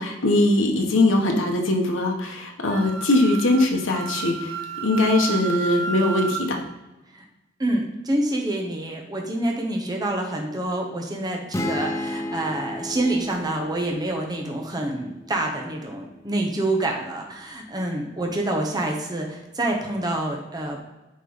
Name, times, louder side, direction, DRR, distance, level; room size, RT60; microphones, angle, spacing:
voice 1, 0.0-4.5 4.8-6.6, left 2 dB, 90° left, 2 dB, 1.1 m, -21 dB
Wind instrument woodwind instrument, 2.7-6.4, right 5 dB, 85° right, 0.8 m, -32 dB
voice 2, 7.6-20.8, right 1 dB, 20° right, 1 dB, 0.8 m, -27 dB
sound 1, 11.5-15.3, left 1 dB, 15° left, 0.5 m, -32 dB
8.3 x 3.1 x 4.0 m, 1.0 s
head